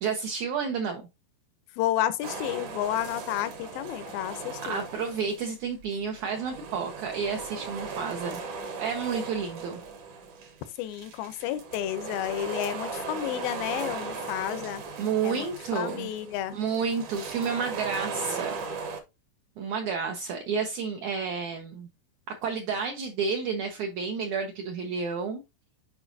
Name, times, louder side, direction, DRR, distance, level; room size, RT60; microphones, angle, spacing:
voice 1, 0.0-1.0 4.6-8.4 8.8-9.8 15.0-16.1 16.5-18.6 19.6-21.9 22.3-25.4, right 5 dB, 70° right, 1.9 m, -30 dB
voice 2, 1.8-4.8 10.8-14.8 15.2-15.5 15.7-16.5, left 12 dB, 85° left, 2.5 m, -31 dB
sound 1, 2.2-5.5 5.8-19.0, right 4 dB, 55° right, 1.9 m, -38 dB
9.1 x 4.7 x 2.7 m
omnidirectional pair, 4.1 m